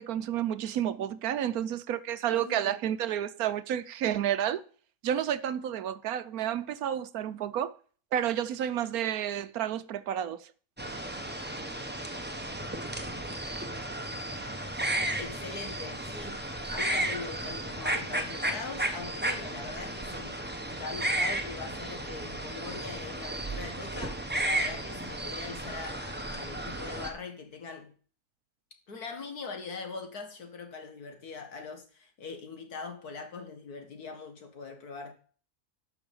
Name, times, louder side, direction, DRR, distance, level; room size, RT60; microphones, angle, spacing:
voice 1, 0.0-4.6 5.0-7.7 8.1-10.5, right 10 dB, 70° right, 1.1 m, -30 dB
voice 2, 2.3-2.8 15.2-20.4 20.7-27.9 28.9-35.1, left 4 dB, 75° left, 2.3 m, -42 dB
sound 1, 10.8-27.1, right 1 dB, 5° right, 1.1 m, -34 dB
12.5 x 6.0 x 5.4 m
omnidirectional pair, 1.7 m